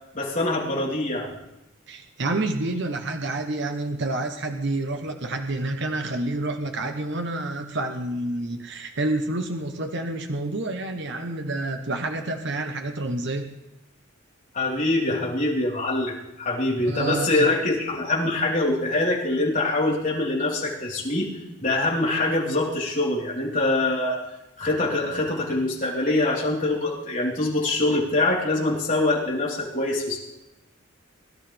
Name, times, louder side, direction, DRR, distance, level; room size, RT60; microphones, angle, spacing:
voice 1, 0.1-1.3 14.5-21.3 21.6-24.2 24.6-30.2, left 2 dB, 40° left, -5 dB, 3.9 m, -24 dB
voice 2, 1.9-13.5 16.8-17.5, right 2 dB, 60° right, 5 dB, 1.0 m, -28 dB
22.5 x 12.0 x 3.4 m, 0.93 s
head